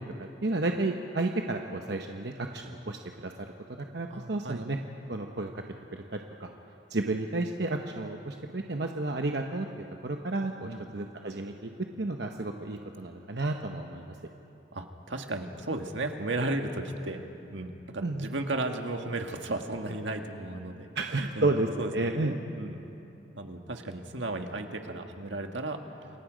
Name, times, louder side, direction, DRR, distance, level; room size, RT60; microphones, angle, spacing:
voice 1, 0.2-3.3 3.7-4.8 5.1-5.6 5.9-6.5 6.9-9.7 10.0-11.7 12.0-14.1 18.0-18.3 20.9-22.3, right 2 dB, 65° right, 3 dB, 1.0 m, -32 dB
voice 2, 4.1-4.7 10.6-10.8 14.7-20.9 21.1-22.8 23.3-25.8, right 2 dB, 85° right, 4 dB, 1.7 m, -35 dB
28.0 x 23.5 x 5.1 m, 2.9 s
head